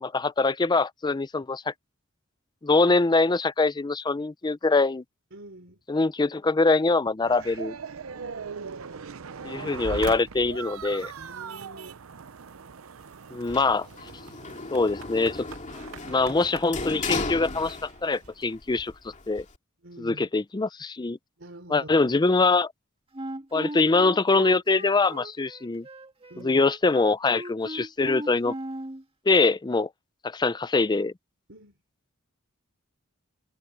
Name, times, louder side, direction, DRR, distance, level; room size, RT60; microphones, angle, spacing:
voice 1, 0.0-1.7 2.6-5.0 5.9-7.8 9.4-11.1 13.3-13.9 14.7-15.5 16.0-18.9 19.3-19.4 20.0-21.2 21.7-22.7 23.5-25.9 26.4-28.5 29.3-29.9 30.2-31.1, left 3 dB, 20° left, 0.5 m, -23 dB
voice 2, 5.3-5.8 8.1-8.8 11.2-12.0 19.8-20.3 21.4-22.2 26.3-26.6 31.5-31.7, right 1 dB, 65° right, 4.0 m, -46 dB
sound 1, 7.2-18.5, right 6 dB, 80° right, 0.7 m, -40 dB
Sliding door, 13.5-18.3 18.6-19.6, left 3 dB, 35° left, 2.4 m, -35 dB
Wind instrument woodwind instrument, 23.1-29.0, right 1 dB, 30° right, 1.7 m, -38 dB
head